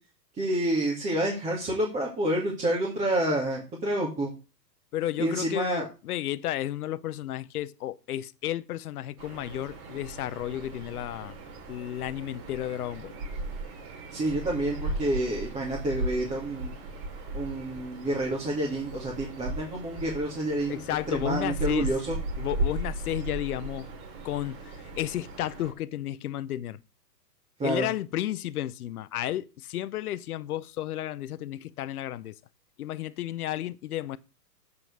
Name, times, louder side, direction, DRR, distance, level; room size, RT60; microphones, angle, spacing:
voice 1, 0.4-4.3 5.2-5.9 14.1-16.7 17.3-22.2 27.6-27.9, right 1 dB, 15° right, 2.3 m, -29 dB
voice 2, 4.9-11.3 11.7-13.1 20.7-21.9 22.4-23.9 24.2-26.8 27.6-32.3 32.8-34.2, left 13 dB, 60° left, 0.8 m, -32 dB
sound 1, 9.2-25.7, right 2 dB, 40° right, 2.9 m, -36 dB
7.7 x 6.0 x 6.5 m
hypercardioid pair, 125°, 49 cm